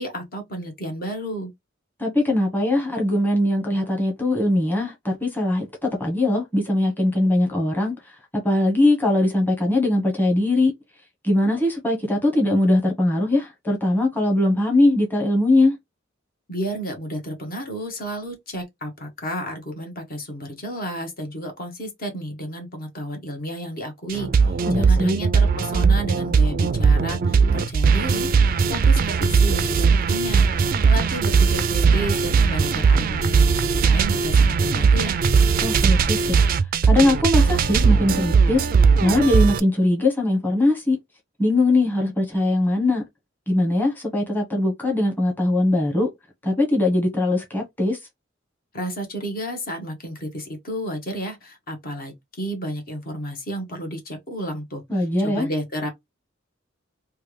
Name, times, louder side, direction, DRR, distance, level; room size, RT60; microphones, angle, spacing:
voice 1, 0.0-1.5 16.5-35.2 48.7-55.9, equal, 50° left, 1.1 m, -32 dB
voice 2, 2.0-8.2 8.4-10.7 11.2-15.7 24.6-25.2 35.6-36.4 36.8-38.7 39.0-41.0 41.4-43.0 43.5-46.1 46.4-48.0 54.9-55.5, left 1 dB, 10° left, 1.0 m, -21 dB
sound 1, 24.1-39.6, right 5 dB, 45° right, 0.3 m, -19 dB
3.2 x 2.2 x 3.1 m
head